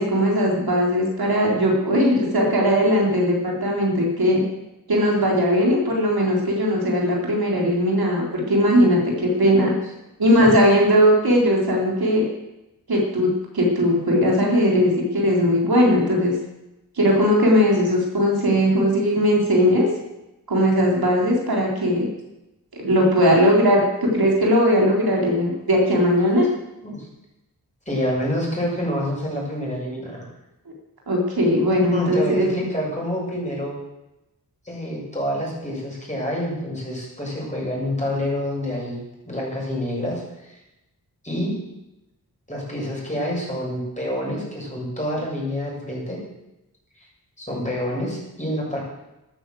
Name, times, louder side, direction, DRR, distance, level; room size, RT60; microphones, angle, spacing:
voice 1, 0.0-4.4 4.9-9.7 10.2-12.3 12.9-13.3 13.5-16.3 17.0-19.9 20.5-22.1 22.8-26.5 31.1-32.5, equal, 75° right, -2 dB, 4.2 m, -19 dB
voice 2, 27.9-30.3 31.8-33.8 34.6-39.0 39.2-40.6 41.2-41.5 42.5-46.2 47.0-47.1 47.4-48.8, equal, 20° left, -4 dB, 7.6 m, -27 dB
13.5 x 10.0 x 7.9 m, 0.94 s
wide cardioid pair, 75°, 37 cm